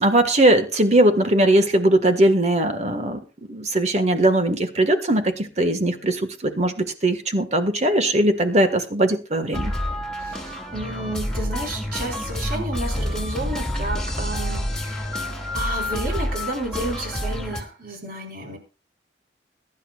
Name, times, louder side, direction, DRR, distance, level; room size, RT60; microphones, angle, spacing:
voice 1, 0.0-3.2 3.5-9.7, right 1 dB, 40° right, 8 dB, 1.7 m, -20 dB
sound 1, 9.5-17.6, left 1 dB, 5° left, 2.4 m, -28 dB
voice 2, 10.2-15.2 15.5-18.6, right 2 dB, 55° right, 1 dB, 4.8 m, -31 dB
22.5 x 11.0 x 2.4 m, 0.31 s
head